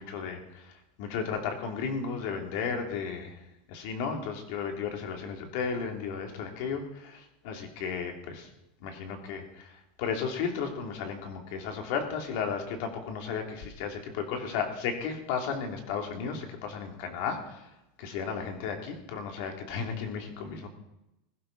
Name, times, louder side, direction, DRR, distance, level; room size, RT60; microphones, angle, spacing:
voice 1, 0.0-3.4 3.7-8.5 8.8-17.7 18.0-20.7, left 6 dB, 50° left, 3 dB, 2.5 m, -34 dB
21.0 x 11.5 x 3.9 m, 0.91 s
supercardioid pair, 175°, 0 cm